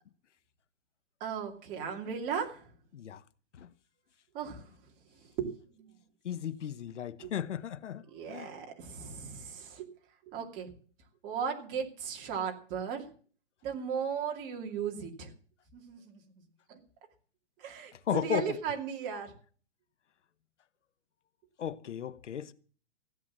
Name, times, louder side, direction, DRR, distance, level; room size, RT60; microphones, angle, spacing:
voice 1, 1.2-2.7 4.3-5.9 7.2-7.3 8.1-9.9 10.3-10.7 11.2-13.1 13.6-15.3 15.7-16.2 16.7-16.8 17.6-19.3, right 7 dB, 25° right, 2.6 m, -37 dB
voice 2, 6.2-8.0 8.3-8.5 18.1-18.4 21.6-22.5, left 9 dB, 75° left, 1.2 m, -34 dB
16.0 x 8.4 x 7.3 m
hypercardioid pair, 160°, 36 cm